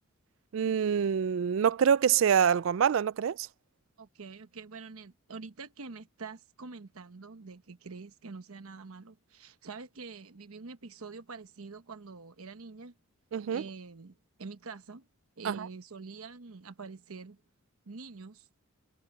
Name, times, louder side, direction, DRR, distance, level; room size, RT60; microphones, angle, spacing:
voice 1, 0.5-3.5 13.3-13.6 15.4-15.7, right 8 dB, 60° right, 0.3 m, -26 dB
voice 2, 4.0-12.9 13.5-15.1 15.4-17.4 17.9-18.5, right 4 dB, 85° right, 1.0 m, -46 dB
head